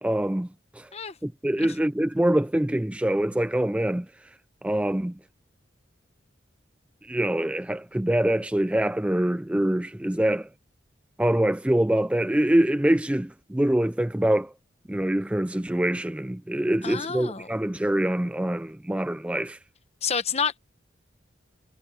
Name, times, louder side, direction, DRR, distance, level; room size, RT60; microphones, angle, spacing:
voice 1, 0.0-0.5 0.8-0.9 1.2-4.1 4.6-5.1 7.0-10.5 11.2-14.5 14.9-19.6, right 1 dB, 5° right, 0.4 m, -24 dB
voice 2, 16.8-17.5 20.0-20.6, left 6 dB, 35° left, 1.1 m, -29 dB
head